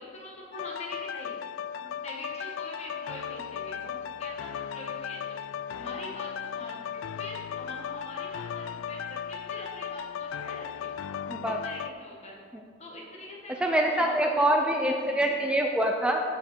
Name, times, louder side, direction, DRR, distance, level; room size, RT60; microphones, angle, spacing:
voice 1, 0.0-1.3 1.7-5.4 5.7-10.9 11.6-12.3 12.8-15.5, left 1 dB, 35° left, -3 dB, 1.6 m, -43 dB
sound 1, 0.5-11.9, left 8 dB, 90° left, 0.3 m, -36 dB
voice 2, 11.3-11.6 13.6-16.2, right 1 dB, 5° right, 2 dB, 0.5 m, -25 dB
15.5 x 5.8 x 4.5 m, 2.2 s
head